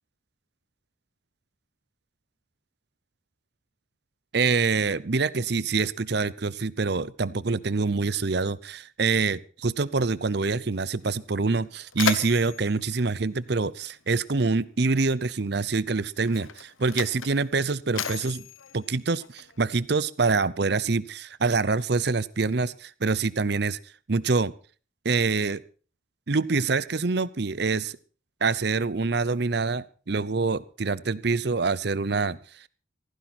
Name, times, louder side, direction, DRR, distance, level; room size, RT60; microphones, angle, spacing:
voice 1, 4.3-18.5 18.7-23.8 24.1-24.5 25.0-25.6 26.3-28.0 28.4-32.4, right 4 dB, 55° right, 19 dB, 0.7 m, -25 dB
Mechanisms, 11.0-11.1 11.5-14.2 15.2-15.4 16.2-19.8, left 7 dB, 80° left, 1.1 m, -35 dB
16.0 x 15.0 x 4.2 m, 0.38 s
head